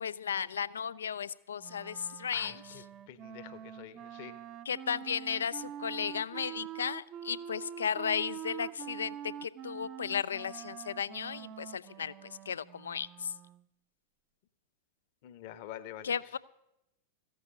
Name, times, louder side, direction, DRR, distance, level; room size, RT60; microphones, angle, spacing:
voice 1, 0.0-2.6 4.7-13.3 16.0-16.4, left 7 dB, 70° left, 18 dB, 0.4 m, -35 dB
Wind instrument woodwind instrument, 1.6-13.7, right 10 dB, 35° right, 0.6 m, -45 dB
voice 2, 2.3-4.4 15.2-16.1, left 12 dB, 50° left, 13 dB, 1.0 m, -46 dB
14.5 x 8.1 x 8.3 m, 0.88 s
figure-of-eight pair, 90°, 0 cm